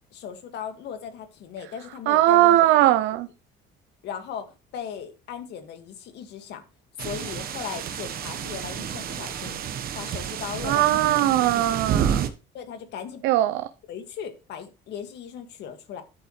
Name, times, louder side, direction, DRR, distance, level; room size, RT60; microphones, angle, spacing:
voice 1, 0.1-2.9 4.0-6.6 7.0-9.6 10.0-11.0 11.3-12.2 12.5-13.2 13.9-16.0, left 8 dB, 70° left, 2.1 m, -38 dB
voice 2, 2.1-3.3 10.6-12.2 13.2-13.7, right 14 dB, 85° right, 0.7 m, -20 dB
sound 1, 7.0-12.3, right 8 dB, 55° right, 1.3 m, -30 dB
10.0 x 8.4 x 3.2 m
cardioid pair, 115°, 18 cm